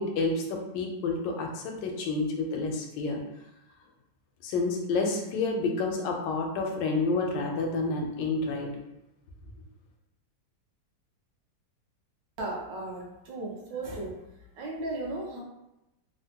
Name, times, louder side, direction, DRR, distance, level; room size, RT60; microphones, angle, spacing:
voice 1, 0.0-3.2 4.4-8.7, left 3 dB, 85° left, 2 dB, 1.2 m, -29 dB
voice 2, 12.4-14.2 14.6-15.4, right 2 dB, 85° right, -1 dB, 1.4 m, -35 dB
3.4 x 2.1 x 2.8 m, 0.91 s
omnidirectional pair, 1.9 m